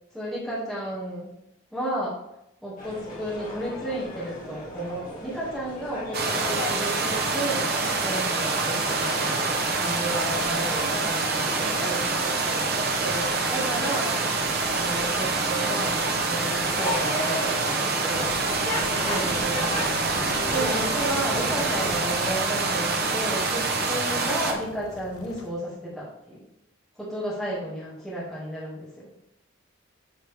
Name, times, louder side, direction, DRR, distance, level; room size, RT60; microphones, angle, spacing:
voice 1, 0.1-1.4 1.7-2.2 2.6-7.7 8.0-9.4 9.7-14.2 14.7-18.3 18.7-20.0 20.3-26.5 27.0-29.1, right 1 dB, ahead, -9 dB, 2.0 m, -33 dB
sound 1, 2.8-21.9, left 1 dB, 40° left, 1.8 m, -36 dB
sound 2, 6.1-24.5, right 3 dB, 45° right, 0.8 m, -26 dB
sound 3, 18.1-25.5, left 2 dB, 85° left, 0.6 m, -41 dB
8.3 x 4.5 x 3.4 m, 0.82 s
head